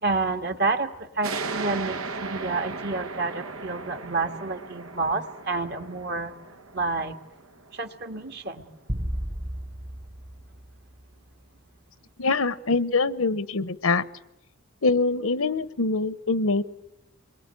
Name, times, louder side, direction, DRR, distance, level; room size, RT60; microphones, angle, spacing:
voice 1, 0.0-6.4 6.7-7.2 7.7-8.6, right 3 dB, 50° right, 1.9 m, -29 dB
sound 1, 1.2-8.4, right 4 dB, 85° right, 1.2 m, -37 dB
sound 2, 8.9-11.4, equal, 25° right, 1.0 m, -34 dB
voice 2, 12.2-14.1 14.8-16.6, left 3 dB, 80° left, 1.0 m, -24 dB
28.5 x 22.0 x 9.1 m
head